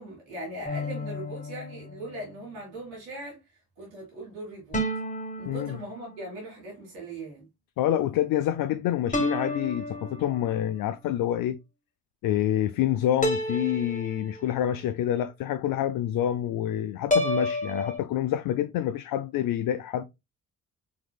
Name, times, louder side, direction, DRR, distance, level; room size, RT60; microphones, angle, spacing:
voice 1, 0.0-4.8 5.4-7.5, right 1 dB, 80° right, 2.0 m, -40 dB
sound 1, 0.6-2.3 4.7-6.4 9.1-10.6 13.2-14.8 17.1-18.0, left 1 dB, 20° left, 1.6 m, -31 dB
voice 2, 5.5-5.8 7.8-11.6 12.2-20.0, left 11 dB, 55° left, 0.5 m, -27 dB
4.6 x 3.7 x 2.3 m
hypercardioid pair, 40°, 40 cm